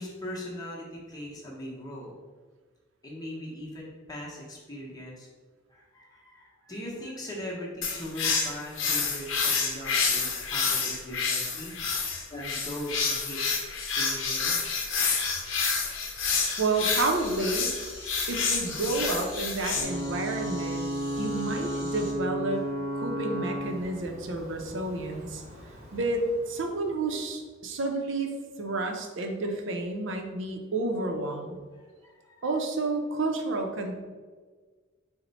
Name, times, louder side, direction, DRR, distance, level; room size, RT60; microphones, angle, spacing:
voice 1, 0.0-2.1 3.0-5.3 5.7-11.7 12.3-13.4 13.9-14.6 31.7-32.5, left 1 dB, 20° left, -4 dB, 0.8 m, -40 dB
sound 1, 7.8-19.8, left 5 dB, 75° left, 0.6 m, -28 dB
voice 2, 16.6-17.7 18.3-20.9 21.2-22.6 22.9-25.4 25.9-28.3 28.6-31.6 32.4-34.0, right 2 dB, 75° right, 3 dB, 0.6 m, -30 dB
sound 2, 16.7-22.1, equal, 5° right, 1.0 m, -45 dB
Ocean / Boat Water vehicle / Alarm, 19.7-27.2, equal, 35° right, 1.0 m, -35 dB
4.2 x 2.1 x 4.0 m, 1.5 s
head